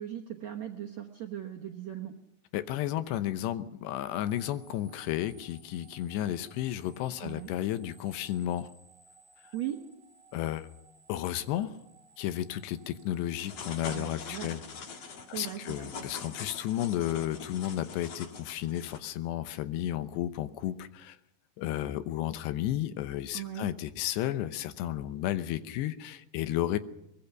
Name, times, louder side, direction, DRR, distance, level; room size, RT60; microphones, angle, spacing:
voice 1, 0.0-2.1 7.2-7.5 9.5-9.8 13.9-14.5 15.3-15.9 23.3-23.7, right 11 dB, 70° right, 1 dB, 1.6 m, -38 dB
voice 2, 2.5-8.7 10.3-10.7 11.1-11.8 12.2-14.6 15.3-21.2 21.6-26.8, left 12 dB, 80° left, 12 dB, 3.0 m, -33 dB
sound 1, 4.1-16.2, right 4 dB, 15° right, 3.1 m, -60 dB
sound 2, 13.4-19.0, left 5 dB, 55° left, 1.9 m, -43 dB
23.0 x 20.5 x 5.9 m, 0.80 s
omnidirectional pair, 5.1 m